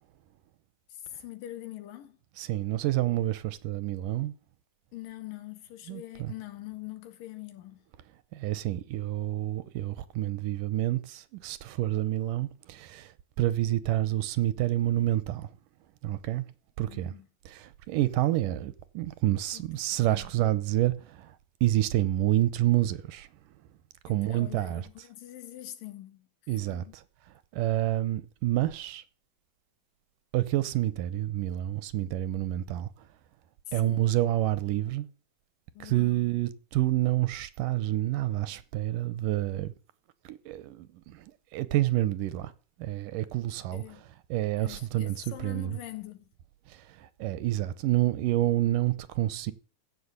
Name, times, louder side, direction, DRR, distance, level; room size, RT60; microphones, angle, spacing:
voice 1, 0.9-2.2 4.9-7.8 16.8-17.3 19.5-19.7 20.1-20.3 24.1-26.3 26.6-27.0 33.7-34.1 35.7-36.3 43.7-44.1 44.6-46.3, left 14 dB, 80° left, 3.1 m, -44 dB
voice 2, 2.4-4.3 5.9-6.3 8.3-13.1 13.4-15.5 16.0-16.5 16.8-17.1 17.5-21.4 21.6-23.3 24.0-24.8 26.5-27.0 27.5-29.0 30.3-32.9 33.7-35.1 35.8-39.7 40.3-41.3 41.5-42.5 42.8-44.0 44.3-45.8 46.7-49.5, right 15 dB, 80° right, 2.3 m, -28 dB
15.5 x 5.9 x 8.2 m
omnidirectional pair, 3.9 m